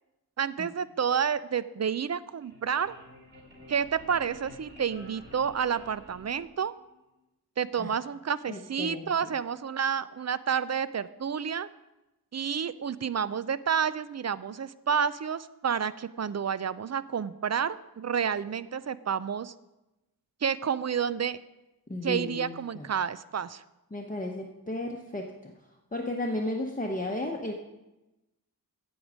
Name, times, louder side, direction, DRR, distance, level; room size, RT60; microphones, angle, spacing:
voice 1, 0.4-3.0 3.7-6.7 7.6-11.7 12.3-19.5 20.4-21.4 22.0-23.6, right 7 dB, 45° right, 16 dB, 0.4 m, -30 dB
sound 1, 2.2-6.9, equal, 30° right, 2.9 m, -51 dB
voice 2, 8.5-9.1 21.9-22.9 23.9-25.5 25.9-27.5, left 1 dB, 20° left, 0 dB, 0.8 m, -34 dB
8.5 x 8.0 x 6.2 m, 0.99 s
wide cardioid pair, 65°, 37 cm